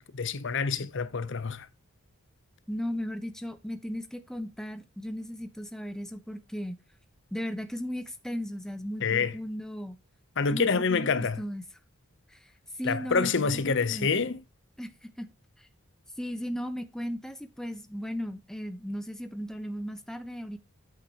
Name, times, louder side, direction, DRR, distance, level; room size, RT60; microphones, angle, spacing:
voice 1, 0.0-1.7 9.0-9.4 10.4-11.4 12.8-14.4, left 5 dB, 55° left, 0.7 m, -27 dB
voice 2, 2.7-6.8 7.3-10.0 10.5-11.1 11.4-11.6 12.3-12.5 12.8-14.3 14.8-15.3 15.6-15.7 16.2-20.6, equal, ahead, 0.9 m, -36 dB
8.6 x 8.2 x 2.9 m
head